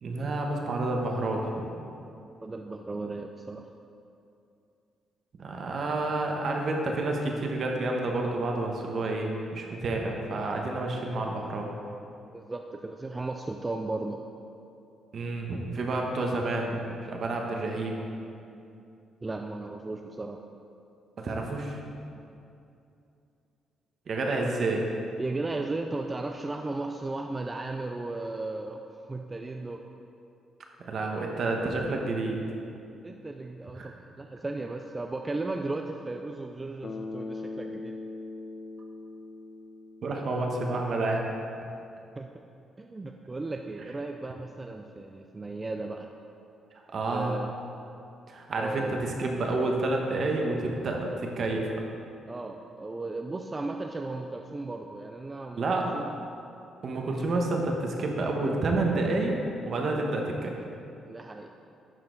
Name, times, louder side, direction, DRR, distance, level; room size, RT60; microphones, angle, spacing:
voice 1, 0.0-1.6 5.4-11.7 15.1-18.0 21.2-21.8 24.1-24.9 30.8-32.4 33.8-33.9 40.0-41.3 46.9-47.4 48.3-51.7 55.6-55.9 56.8-59.4 59.6-60.5, right 2 dB, 55° right, 1 dB, 1.1 m, -29 dB
voice 2, 2.4-3.7 12.3-14.2 19.2-20.4 25.2-29.8 33.0-38.0 42.2-42.5 42.8-46.1 47.1-47.5 48.6-49.0 52.3-56.1 61.1-61.5, right 2 dB, 20° right, 3 dB, 0.4 m, -35 dB
Bass guitar, 36.8-40.8, left 3 dB, 50° left, 0.5 m, -40 dB
11.0 x 4.5 x 3.9 m, 2.6 s
cardioid pair, 90°, 0 cm